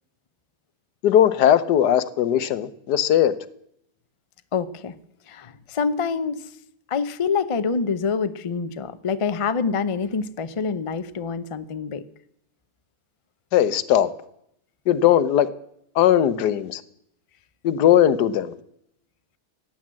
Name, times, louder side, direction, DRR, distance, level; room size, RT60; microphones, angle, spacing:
voice 1, 1.0-3.3 13.5-14.1 14.9-15.5 15.9-16.8 17.6-18.5, left 10 dB, 90° left, 15 dB, 1.4 m, -18 dB
voice 2, 4.5-4.9 5.3-6.4 6.9-12.0, left 5 dB, 45° left, 12 dB, 0.4 m, -26 dB
16.5 x 9.3 x 7.5 m, 0.75 s
omnidirectional pair, 1.7 m